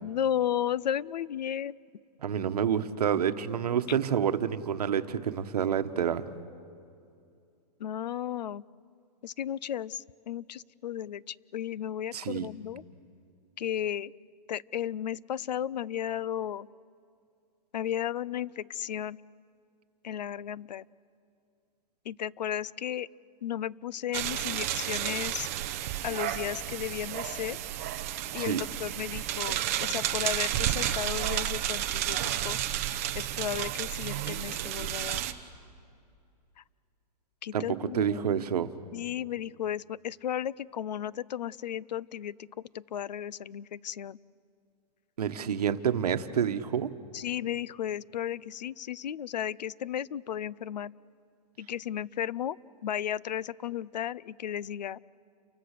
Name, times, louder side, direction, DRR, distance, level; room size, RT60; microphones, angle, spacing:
voice 1, 0.0-1.8 7.8-8.6 9.2-12.8 13.6-14.1 14.5-16.7 17.7-19.2 20.0-20.8 22.0-23.1 23.4-25.5 26.0-27.6 28.3-32.6 33.1-35.2 37.4-38.2 38.9-42.5 42.7-44.2 47.1-50.9 51.6-52.6 52.8-55.0, left 10 dB, 80° left, 22 dB, 0.6 m, -34 dB
voice 2, 2.2-6.3 12.1-12.5 28.4-28.7 37.5-38.7 45.2-46.9, right 8 dB, 65° right, 10 dB, 1.3 m, -28 dB
sound 1, 24.1-35.3, right 12 dB, 20° right, 0.7 m, -32 dB
29.5 x 24.5 x 6.7 m, 2.4 s
hypercardioid pair, 180°, 21 cm